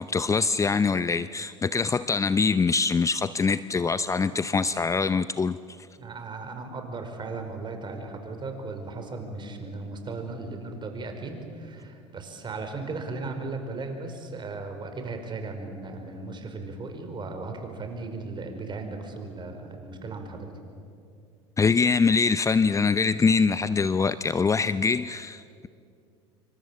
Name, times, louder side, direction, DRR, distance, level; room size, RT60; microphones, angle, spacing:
voice 1, 0.0-5.6 21.6-25.7, left 5 dB, 20° left, 14 dB, 0.6 m, -24 dB
voice 2, 6.0-20.5, right 3 dB, 30° right, 5 dB, 5.1 m, -36 dB
27.0 x 24.5 x 7.7 m, 2.5 s
hypercardioid pair, 75°, 15 cm